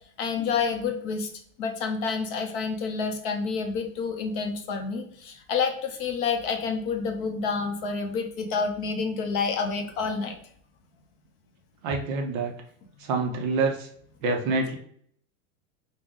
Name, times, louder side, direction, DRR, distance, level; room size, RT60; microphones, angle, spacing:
voice 1, 0.2-1.3 1.6-10.4, left 5 dB, 40° left, 4 dB, 0.5 m, -28 dB
voice 2, 11.8-12.5 13.0-13.9 14.2-14.8, right 3 dB, 40° right, 2 dB, 0.4 m, -26 dB
3.6 x 2.0 x 3.5 m, 0.63 s
supercardioid pair, 150°, 42 cm